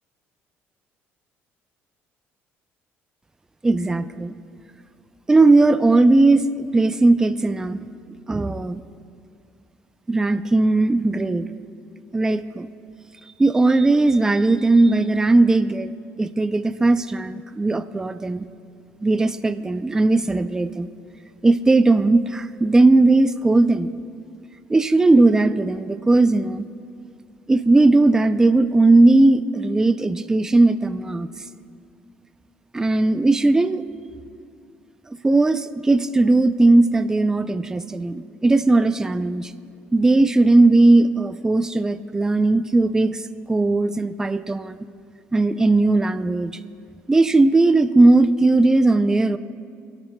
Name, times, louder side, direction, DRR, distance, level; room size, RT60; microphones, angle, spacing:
voice 1, 3.6-4.3 5.3-7.8 8.3-8.8 10.1-11.5 12.1-12.7 13.4-18.4 19.0-20.9 21.4-23.9 24.7-26.7 27.5-31.3 32.7-33.9 35.2-39.5 39.9-43.2 43.5-44.8 45.3-46.5 47.1-49.4, right 2 dB, 10° right, 11 dB, 0.4 m, -18 dB
24.0 x 12.5 x 2.2 m, 2.3 s
cardioid pair, 125°, 5 cm